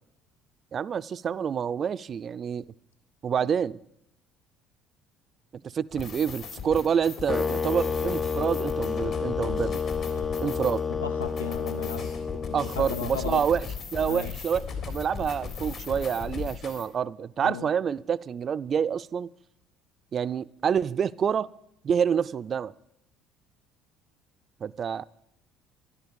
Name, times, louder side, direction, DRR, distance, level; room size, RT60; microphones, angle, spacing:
voice 1, 0.7-2.6 3.2-3.8 5.7-9.8 10.4-10.8 12.5-13.7 13.9-19.3 20.1-21.5 21.8-22.7 24.6-25.0, right 7 dB, 45° right, 0.4 m, -27 dB
sound 1, 5.9-16.9, left 6 dB, 60° left, 3.6 m, -38 dB
sound 2, 7.3-13.4, left 5 dB, 30° left, 0.4 m, -30 dB
voice 2, 10.1-10.5 11.0-12.1 12.5-13.4 14.1-14.4 17.4-17.7, left 7 dB, 85° left, 0.4 m, -36 dB
13.5 x 11.5 x 7.1 m
hypercardioid pair, 60°, 0 cm